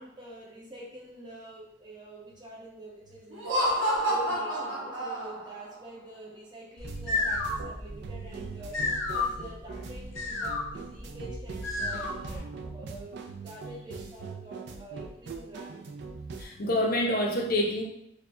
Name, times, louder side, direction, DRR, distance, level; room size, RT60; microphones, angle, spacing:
voice 1, 0.0-3.8 4.1-15.9, right 1 dB, 25° right, -4 dB, 0.8 m, -46 dB
Laughter, 3.3-5.6, equal, 75° right, 1.0 m, -29 dB
sound 1, 6.8-12.4, left 3 dB, 85° left, 0.8 m, -33 dB
sound 2, 6.8-16.4, right 4 dB, 60° right, 0.4 m, -42 dB
voice 2, 16.4-17.8, left 1 dB, 50° left, 0 dB, 0.6 m, -27 dB
4.6 x 2.2 x 2.6 m, 0.76 s
head